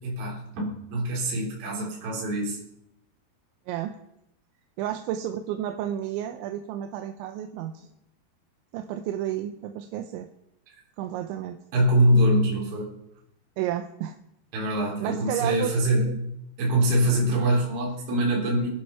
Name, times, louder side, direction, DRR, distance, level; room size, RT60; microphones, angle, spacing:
voice 1, 0.0-2.6 11.7-12.9 14.5-16.1 16.6-18.7, right 1 dB, 55° right, -4 dB, 5.5 m, -24 dB
voice 2, 4.8-7.9 8.7-10.3 11.0-11.6 13.6-14.2 15.0-16.2, right 11 dB, 90° right, 6 dB, 3.2 m, -31 dB
21.5 x 10.0 x 5.7 m, 0.82 s
omnidirectional pair, 5.2 m